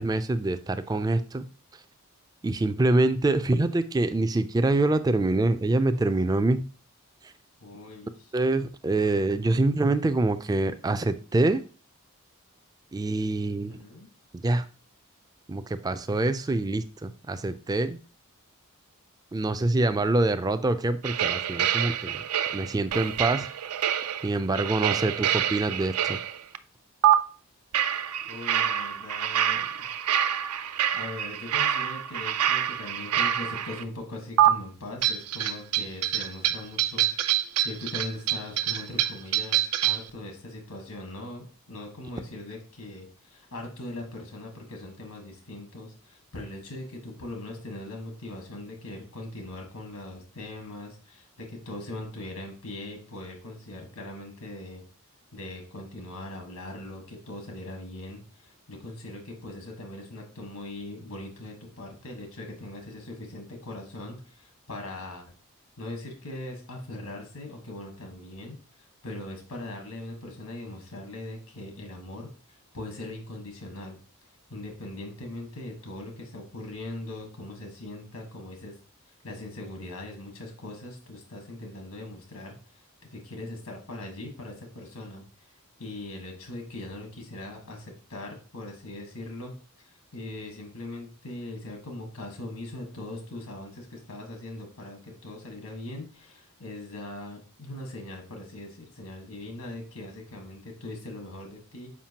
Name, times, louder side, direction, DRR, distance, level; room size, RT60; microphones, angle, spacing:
voice 1, 0.0-1.5 2.4-6.6 7.2-7.3 8.3-11.6 12.9-13.8 14.4-14.7 15.5-18.0 19.3-22.3 22.5-23.5 24.2-26.2, right 2 dB, 15° right, 11 dB, 0.3 m, -25 dB
voice 2, 7.6-8.3 13.4-14.1 28.3-30.1 30.9-54.8 55.3-65.3 65.8-74.0 74.5-78.8 79.1-82.8 83.1-89.5 89.8-101.9, left 1 dB, 85° left, 2 dB, 1.5 m, -40 dB
sound 1, 21.0-26.6 27.0-27.1 27.7-33.8 34.4-34.5 35.0-40.1, right 11 dB, 80° right, 0.4 m, -26 dB
7.3 x 5.0 x 2.8 m, 0.38 s
head